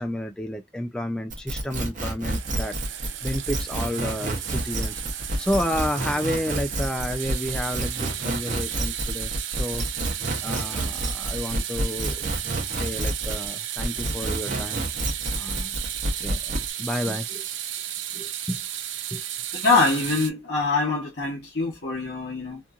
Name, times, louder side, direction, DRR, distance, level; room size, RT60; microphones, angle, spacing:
voice 1, 0.0-9.8 10.4-12.1 12.6-14.8 15.3-15.8 16.2-17.5 18.1-18.6 19.1-19.2, left 1 dB, 5° left, 0.3 m, -31 dB
sound 1, 1.3-13.5 13.8-16.7, right 1 dB, 45° right, 0.8 m, -29 dB
sound 2, 2.3-20.3, right 11 dB, 85° right, 0.4 m, -33 dB
voice 2, 19.5-22.6, left 3 dB, 60° left, 0.9 m, -24 dB
2.9 x 2.5 x 2.3 m
head